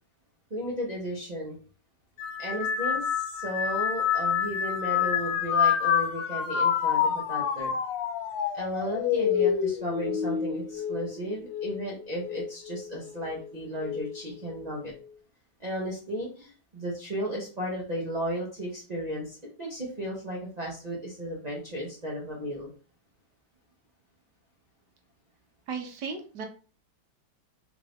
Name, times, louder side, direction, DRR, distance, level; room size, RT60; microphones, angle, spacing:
voice 1, 0.5-1.6 2.4-7.7 8.5-14.9 15.6-22.7, equal, 40° right, -4 dB, 0.6 m, -34 dB
sound 1, 2.2-11.8 12.2-12.8 13.8-14.2, left 8 dB, 80° left, 1.3 m, -28 dB
voice 2, 25.7-26.5, right 5 dB, 70° right, 4 dB, 1.2 m, -35 dB
3.6 x 2.5 x 3.4 m, 0.37 s
omnidirectional pair, 2.0 m